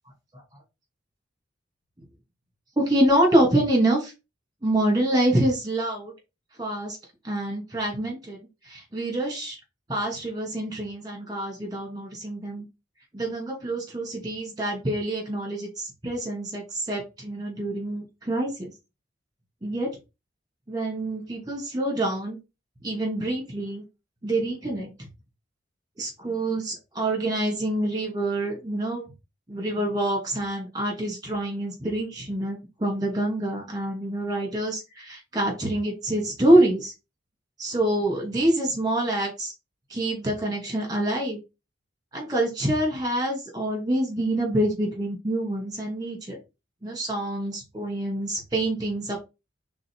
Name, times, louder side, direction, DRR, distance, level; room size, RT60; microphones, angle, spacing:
voice 1, 2.8-4.1 4.6-6.1 6.6-7.0 7.2-8.4 8.7-9.6 9.9-12.6 13.1-18.7 19.6-20.0 20.7-22.4 22.8-23.8 24.2-24.9 26.0-29.0 29.5-36.9 37.6-39.5 39.9-41.4 42.1-46.4 46.8-49.2, right 1 dB, 20° right, 0 dB, 2.7 m, -26 dB
4.9 x 4.0 x 4.8 m, 0.26 s
head